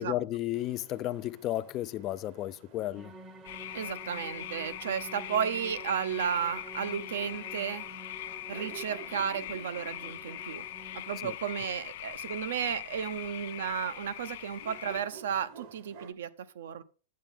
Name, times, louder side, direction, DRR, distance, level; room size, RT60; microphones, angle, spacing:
voice 1, 0.0-3.1 11.2-11.4, left 14 dB, 30° left, 0.3 m, -33 dB
sound 1, 0.5-16.1, right 6 dB, 40° right, 0.9 m, -54 dB
sound 2, 3.0-11.2, right 1 dB, 10° right, 0.7 m, -49 dB
sound 3, 3.4-15.0, left 14 dB, 60° left, 0.7 m, -41 dB
voice 2, 3.7-7.9 8.5-10.6 11.1-16.8, right 8 dB, 75° right, 0.8 m, -33 dB
8.8 x 8.2 x 3.7 m
supercardioid pair, 155°, 0 cm